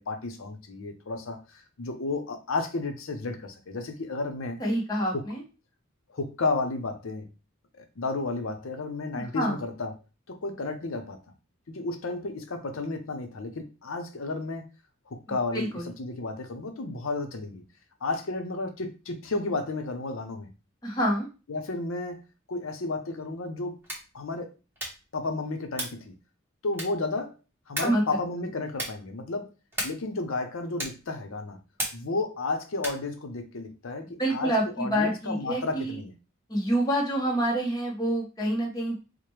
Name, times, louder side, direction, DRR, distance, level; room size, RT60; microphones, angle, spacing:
voice 1, 0.0-4.6 5.1-5.2 6.1-7.3 7.7-9.9 10.3-11.2 11.7-14.7 15.1-17.6 18.0-20.5 21.5-22.2 22.5-23.8 24.1-24.5 25.1-26.1 26.6-27.3 27.7-29.5 29.8-31.6 31.9-34.5 34.8-36.1, left 3 dB, 75° left, 6 dB, 0.7 m, -32 dB
voice 2, 4.6-5.4 9.3-9.6 15.5-15.9 20.8-21.3 27.8-28.0 34.2-36.0 36.5-38.9, right 1 dB, 20° left, -2 dB, 0.9 m, -27 dB
sound 1, 23.8-24.2 24.7-25.1 25.7-26.1 26.7-27.1 27.7-28.1 28.7-29.1 29.7-30.1 30.8-31.1 31.8-32.2 32.8-33.1, right 1 dB, 10° right, 0.9 m, -35 dB
4.8 x 2.1 x 3.0 m, 0.31 s
head